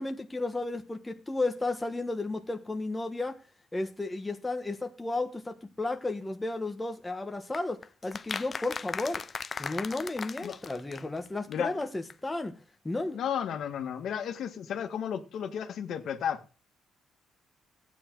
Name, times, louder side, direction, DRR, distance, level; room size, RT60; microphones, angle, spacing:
voice 1, 0.0-3.4 3.7-9.2 9.6-12.6 12.8-13.2, left 2 dB, 15° left, 1.3 m, -33 dB
sound 1, 7.5-11.3 11.5-11.6 11.8-11.9 12.1-12.2, left 5 dB, 35° left, 0.6 m, -38 dB
voice 2, 13.1-16.4, left 8 dB, 65° left, 1.8 m, -33 dB
15.0 x 9.0 x 4.7 m
cardioid pair, 115°, 0 cm